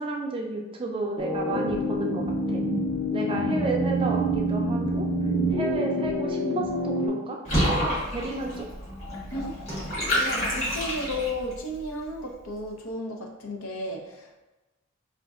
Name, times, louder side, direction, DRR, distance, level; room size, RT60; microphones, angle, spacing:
voice 1, 0.0-2.2 2.5-2.6 3.1-5.1 5.5-8.7, right 2 dB, 25° right, 0 dB, 0.4 m, -32 dB
sound 1, 1.2-7.1, right 1 dB, 10° left, 1.2 m, -27 dB
voice 2, 3.2-4.1 9.3-14.4, left 1 dB, 80° left, 1 dB, 0.7 m, -34 dB
Water / Bathtub (filling or washing), 7.4-11.5, equal, 30° left, 1.4 m, -28 dB
5.0 x 2.5 x 2.4 m, 1.1 s
head